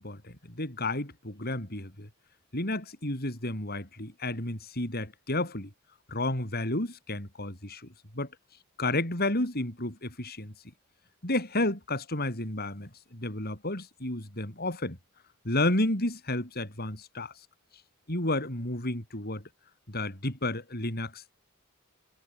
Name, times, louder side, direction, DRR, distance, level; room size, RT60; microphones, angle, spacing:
voice 1, 0.0-2.1 2.5-5.7 6.1-7.9 8.1-8.3 8.8-10.5 11.2-15.0 15.4-17.3 18.1-19.4 19.9-21.3, left 2 dB, 45° left, 7.6 m, -31 dB
head